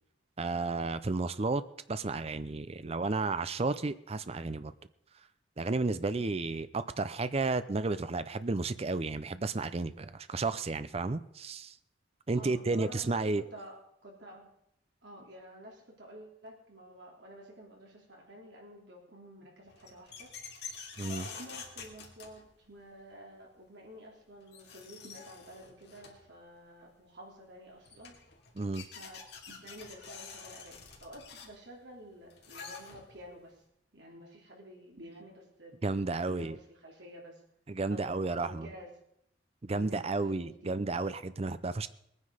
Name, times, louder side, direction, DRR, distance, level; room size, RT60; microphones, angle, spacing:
voice 1, 0.4-1.6 1.9-4.7 5.6-11.7 12.3-13.4 21.0-21.3 28.6-28.8 35.8-36.6 37.7-38.7 39.6-41.9, right 3 dB, 35° right, 13 dB, 0.5 m, -32 dB
voice 2, 12.3-14.5 15.0-20.3 21.1-28.2 28.9-33.6 33.9-37.4 37.9-38.9 39.7-40.8, equal, 65° right, -1 dB, 3.7 m, -51 dB
sound 1, 19.7-22.8 24.1-24.2 24.5-26.3 27.5-27.6 27.8-33.3, left 5 dB, 65° left, 2.4 m, -47 dB
20.5 x 9.6 x 5.0 m, 0.74 s
head